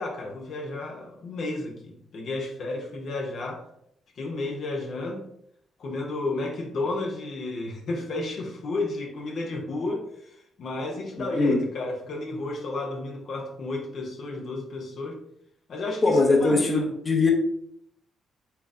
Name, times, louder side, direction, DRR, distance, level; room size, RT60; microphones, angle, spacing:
voice 1, 0.0-3.6 4.2-5.2 5.8-15.2 15.7-16.9, left 2 dB, 65° left, 1 dB, 0.8 m, -32 dB
voice 2, 11.2-11.6 16.0-17.3, left 3 dB, 30° left, 1 dB, 0.8 m, -21 dB
4.4 x 3.5 x 2.6 m, 0.73 s
supercardioid pair, 65°, 0 cm